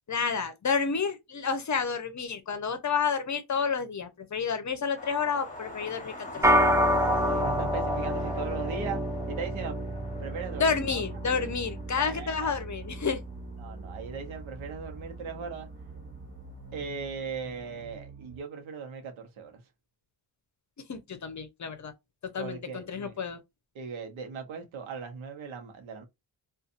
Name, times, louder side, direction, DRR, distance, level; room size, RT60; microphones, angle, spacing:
voice 1, 0.1-6.6 10.6-13.2 20.9-21.9 22.2-23.4, left 5 dB, 40° left, 0.7 m, -30 dB
sound 1, 5.0-16.0 17.0-17.1 17.5-17.6, left 2 dB, 15° left, 1.1 m, -46 dB
sound 2, 6.3-18.4, right 3 dB, 45° right, 1.2 m, -47 dB
sound 3, 6.4-16.0, equal, 5° right, 0.4 m, -29 dB
voice 2, 7.1-9.0 9.3-9.8 10.2-11.0 11.9-12.6 13.6-15.7 16.7-19.6 22.4-23.2 23.7-26.0, right 5 dB, 85° right, 0.9 m, -38 dB
2.6 x 2.4 x 2.5 m
cardioid pair, 65°, 46 cm